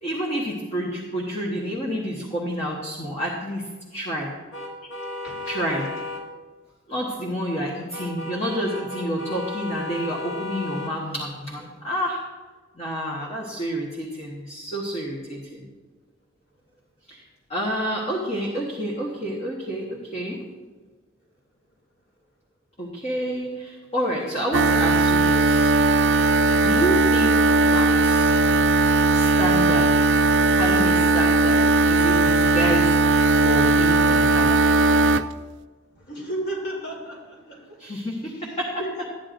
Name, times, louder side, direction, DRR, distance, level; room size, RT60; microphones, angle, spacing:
voice 1, 0.0-4.3 5.5-5.9 6.9-12.2 12.7-15.7 17.1-17.2 17.5-20.4 22.8-25.7 26.6-28.4 29.1-30.1 30.5-34.7 37.8-38.7, equal, 35° left, -3 dB, 1.3 m, -29 dB
sound 1, 4.5-6.2 7.9-10.9, left 2 dB, 75° left, 1.8 m, -34 dB
sound 2, 24.5-35.2, right 3 dB, 60° right, 0.3 m, -18 dB
voice 2, 35.9-37.8 38.8-39.1, right 1 dB, 55° left, -2 dB, 3.2 m, -33 dB
13.5 x 9.6 x 2.6 m, 1.3 s
head